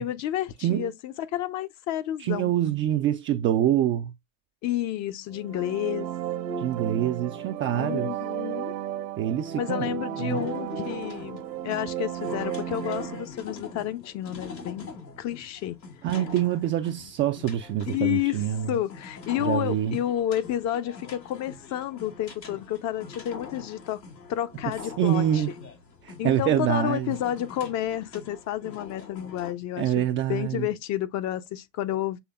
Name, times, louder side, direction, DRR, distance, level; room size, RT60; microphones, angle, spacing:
voice 1, 0.0-2.5 4.6-6.1 7.7-8.8 9.5-14.9 15.2-15.8 17.8-24.0 24.3-25.2 26.2-32.2, left 12 dB, 35° left, 0.6 m, -30 dB
voice 2, 2.2-4.1 6.6-8.1 9.2-9.9 10.2-10.5 16.0-18.8 19.4-20.0 25.0-25.5 26.0-27.1 29.8-30.7, right 11 dB, 25° right, 0.4 m, -25 dB
sound 1, 5.3-13.2, right 10 dB, 75° right, 1.3 m, -33 dB
sound 2, 10.3-29.5, left 4 dB, 90° left, 1.6 m, -44 dB
7.0 x 3.3 x 2.3 m
hypercardioid pair, 80°, 49 cm